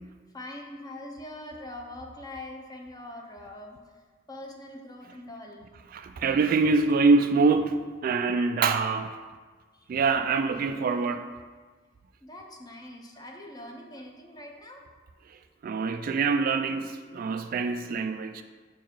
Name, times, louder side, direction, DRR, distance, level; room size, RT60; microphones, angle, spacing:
voice 1, 0.3-3.8 4.3-5.7 9.7-9.9 12.2-14.8, left 1 dB, 20° left, 0.7 m, -43 dB
voice 2, 5.9-9.1 9.9-11.3 15.6-18.4, right 4 dB, 50° right, 0.3 m, -25 dB
5.8 x 4.6 x 4.5 m
head